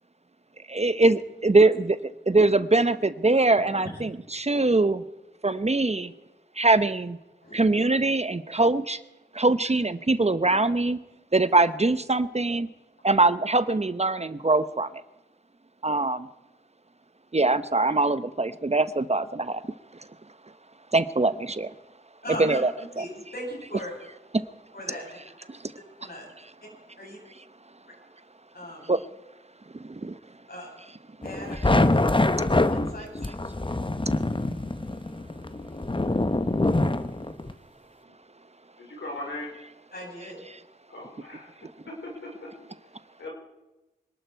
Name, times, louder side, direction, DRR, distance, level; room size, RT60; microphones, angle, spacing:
voice 1, 0.7-5.0 5.4-6.1 6.6-7.2 7.5-9.0 9.3-11.0 11.3-12.7 13.0-14.9 15.8-16.3 17.3-19.6 20.9-21.7 22.3-23.1 23.7-23.8 25.5-25.6 28.9-29.0 29.7-30.2 31.5-31.7 40.4-40.6, right 2 dB, 35° right, 13 dB, 0.9 m, -23 dB
voice 2, 22.2-22.6 23.0-23.9 24.7-25.2 26.0-26.3 27.0-27.2 28.5-29.0 30.5-30.7 31.2-32.1 32.7-33.1 39.9-40.4, equal, 60° left, -2 dB, 7.9 m, -38 dB
sound 1, 31.2-37.5, left 2 dB, 25° left, 1.0 m, -25 dB
voice 3, 38.8-39.5 40.9-41.5 42.0-42.7 43.2-43.3, left 1 dB, 90° left, 0 dB, 4.3 m, -38 dB
25.5 x 12.0 x 4.6 m, 1.0 s
cardioid pair, 40°, 19 cm